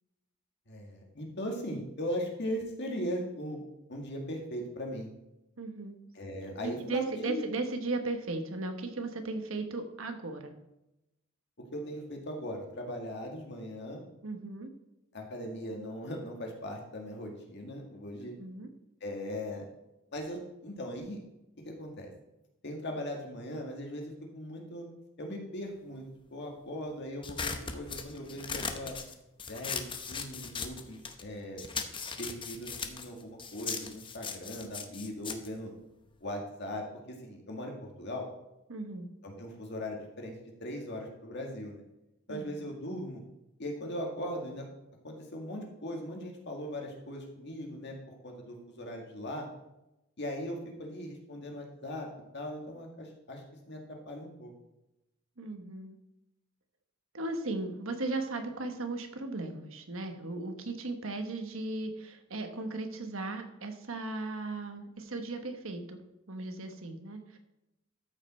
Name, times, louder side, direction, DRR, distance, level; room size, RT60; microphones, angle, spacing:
voice 1, 0.7-3.6 3.9-5.1 6.1-7.4 11.7-14.0 15.1-18.3 19.0-19.6 20.1-21.2 21.6-22.1 22.6-24.9 25.2-26.0 26.3-29.0 29.5-31.6 32.2-35.7 36.2-38.3 39.2-40.3 40.6-41.8 42.3-43.2 43.6-44.7 45.0-49.5 50.2-52.1 52.3-54.5, equal, 60° left, 1 dB, 1.9 m, -39 dB
voice 2, 5.6-6.0 6.6-10.5 14.2-14.7 18.2-18.7 38.7-39.1 42.3-42.6 55.4-56.0 57.1-66.0 66.3-67.4, right 2 dB, 75° right, 6 dB, 1.2 m, -36 dB
sound 1, 27.2-31.3 31.6-36.4, left 5 dB, 25° left, 0.7 m, -39 dB
13.0 x 5.4 x 4.3 m, 0.91 s
head